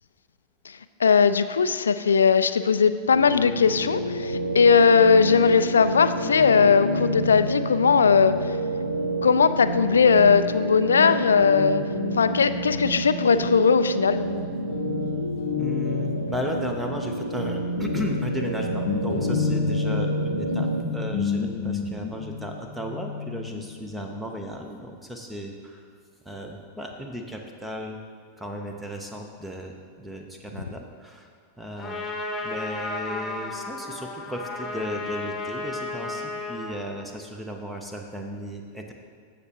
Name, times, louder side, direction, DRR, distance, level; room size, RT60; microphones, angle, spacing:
voice 1, 1.0-8.3 9.2-11.8 12.2-14.2, left 5 dB, 70° left, 12 dB, 0.3 m, -19 dB
sound 1, 3.1-20.8, right 2 dB, 80° right, 0.4 m, -29 dB
Guitar, 6.2-13.9 14.2-24.6, left 5 dB, 50° left, 0.7 m, -32 dB
voice 2, 15.6-25.8 26.2-28.0 28.4-31.3 31.6-32.0 32.4-38.9, equal, 5° right, 3 dB, 0.8 m, -35 dB
Trumpet, 31.8-36.8, left 2 dB, 15° left, 1.3 m, -33 dB
14.5 x 5.9 x 2.9 m, 2.2 s
figure-of-eight pair, 90°, 0 cm